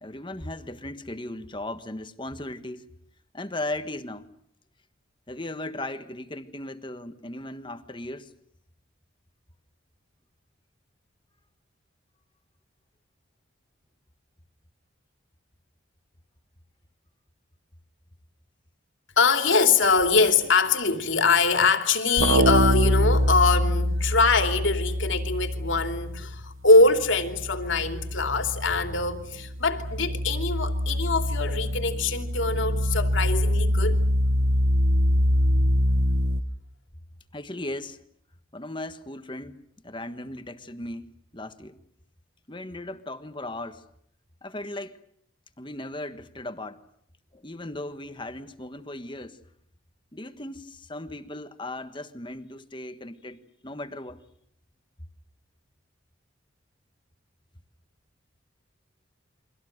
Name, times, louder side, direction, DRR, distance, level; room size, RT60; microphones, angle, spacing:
voice 1, 0.0-2.8 3.3-4.3 5.3-8.3 37.3-38.0 38.5-41.8 42.5-43.9 44.4-45.0 45.6-46.8 47.3-49.4 50.1-54.2, left 1 dB, 25° left, 1.4 m, -37 dB
voice 2, 19.2-34.0, left 3 dB, 70° left, 3.0 m, -23 dB
sound 1, 22.2-26.5 26.8-36.4, equal, 80° right, 1.1 m, -25 dB
29.5 x 24.5 x 6.6 m
head